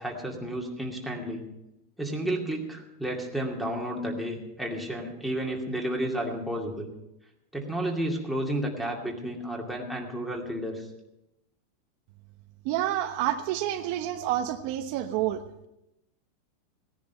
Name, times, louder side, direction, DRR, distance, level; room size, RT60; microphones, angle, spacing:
voice 1, 0.0-1.4 2.0-6.9 7.5-10.9, right 1 dB, ahead, 1 dB, 2.3 m, -32 dB
voice 2, 12.6-15.7, right 12 dB, 55° right, 6 dB, 0.9 m, -29 dB
17.0 x 10.5 x 5.5 m, 0.88 s
supercardioid pair, 150°, 0 cm